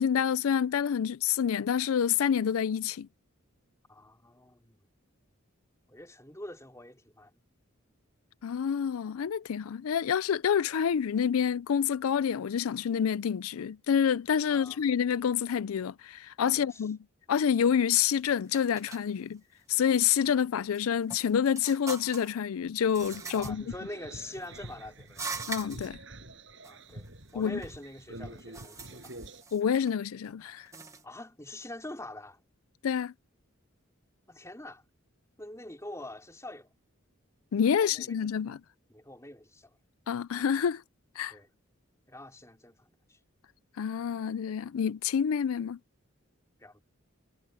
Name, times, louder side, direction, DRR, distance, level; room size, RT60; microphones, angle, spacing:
voice 1, 0.0-3.1 8.4-17.0 17.3-19.4 19.7-23.7 25.5-26.0 27.4-27.6 29.5-30.7 32.8-33.1 37.5-38.6 40.1-40.8 41.2-41.3 43.8-45.8, left 8 dB, 85° left, 0.4 m, -28 dB
voice 2, 3.9-4.8 5.9-7.3 14.5-14.8 16.5-16.8 23.3-25.3 26.6-27.1 27.3-29.3 31.0-32.4 34.3-34.8 35.4-36.7 37.8-38.2 38.9-39.8 41.3-41.5 42.1-43.2 46.6-46.8, left 1 dB, 15° left, 4.2 m, -45 dB
sound 1, 17.9-18.1 18.5-19.0 19.8-20.0 20.6-22.4 22.9-23.5 24.1-24.6 25.1-25.9 26.6-26.7 27.1-27.8 28.2-29.9 30.6-31.0, right 4 dB, 15° right, 1.2 m, -42 dB
sound 2, 23.0-29.4, right 1 dB, 60° right, 6.8 m, -47 dB
head